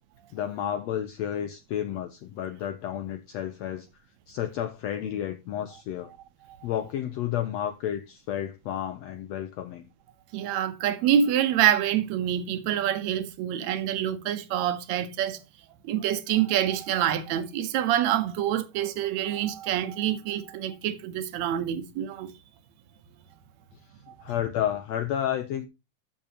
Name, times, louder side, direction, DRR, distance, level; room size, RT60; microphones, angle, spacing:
voice 1, 0.3-3.9 4.3-6.1 6.6-9.9 24.2-25.7, left 10 dB, 75° left, 1.6 m, -31 dB
voice 2, 10.3-15.4 15.8-22.3 24.1-24.2, right 10 dB, 70° right, 1.9 m, -26 dB
13.5 x 7.3 x 2.9 m
omnidirectional pair, 3.7 m